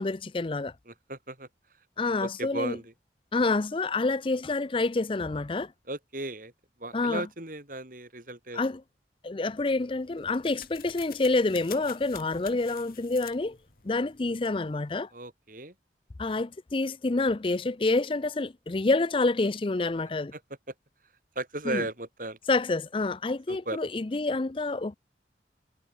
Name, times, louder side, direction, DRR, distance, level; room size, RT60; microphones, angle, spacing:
voice 1, 0.0-0.7 2.0-2.8 3.3-5.7 6.9-7.2 8.5-8.8 9.2-13.6 13.8-15.1 16.2-20.3 21.7-21.8 22.5-24.9, left 3 dB, 30° left, 0.5 m, -28 dB
voice 2, 0.9-1.5 2.2-2.9 5.9-6.5 6.8-8.6 15.1-15.7 20.3-20.4 21.3-22.4 23.5-23.8, right 2 dB, 50° right, 5.1 m, -36 dB
sound 1, 9.6-15.0, left 10 dB, 55° left, 6.1 m, -49 dB
head